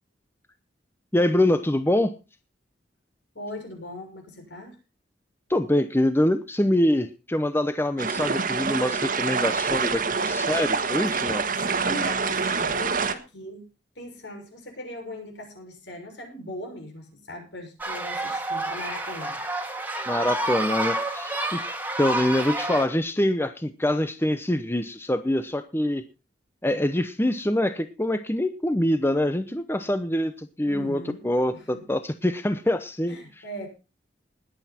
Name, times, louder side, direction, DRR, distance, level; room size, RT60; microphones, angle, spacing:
voice 1, 1.1-2.1 5.5-11.4 20.1-21.6 22.0-26.0 26.6-33.2, left 1 dB, 15° left, 10 dB, 0.8 m, -24 dB
voice 2, 3.3-4.8 11.8-13.6 13.9-19.4 30.6-31.8 33.1-33.7, left 1 dB, 75° left, 3 dB, 6.6 m, -39 dB
sound 1, 8.0-13.1, right 5 dB, 50° right, 1.5 m, -26 dB
sound 2, 17.8-22.9, right 1 dB, 10° right, 1.9 m, -29 dB
20.5 x 8.2 x 4.3 m, 0.31 s
head